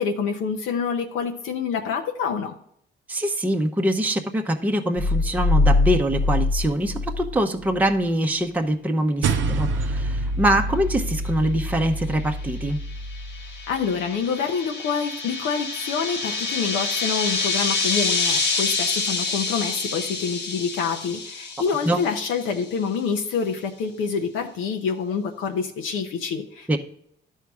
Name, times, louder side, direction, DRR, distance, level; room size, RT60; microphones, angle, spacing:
voice 1, 0.0-2.5 13.7-26.8, left 6 dB, 90° left, 3 dB, 0.8 m, -27 dB
voice 2, 3.1-12.8 21.8-22.0 26.7-26.8, right 1 dB, 10° right, 3 dB, 0.7 m, -24 dB
sound 1, 5.0-7.9, left 3 dB, 35° left, 0.7 m, -22 dB
sound 2, 9.2-13.9, right 2 dB, 70° right, 0.7 m, -27 dB
sound 3, 12.7-22.5, left 4 dB, 60° left, 1.2 m, -27 dB
11.5 x 4.6 x 3.5 m, 0.70 s
cardioid pair, 90°, 20 cm